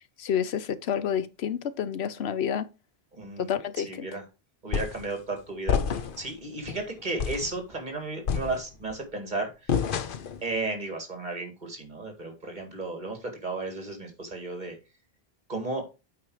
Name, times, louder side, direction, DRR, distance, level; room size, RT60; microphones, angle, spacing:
voice 1, 0.2-2.7 3.4-4.1, left 8 dB, 90° left, 1.0 m, -29 dB
voice 2, 3.1-3.5 3.8-4.2 4.6-5.8 6.2-10.0 10.4-14.8 15.5-15.8, right 2 dB, 45° right, 2.2 m, -34 dB
sound 1, 4.7-5.1 5.7-6.3 6.7-6.8 7.2-7.5 8.3-8.9 9.7-10.4, left 6 dB, 60° left, 0.9 m, -28 dB
8.5 x 4.7 x 4.8 m
omnidirectional pair, 1.0 m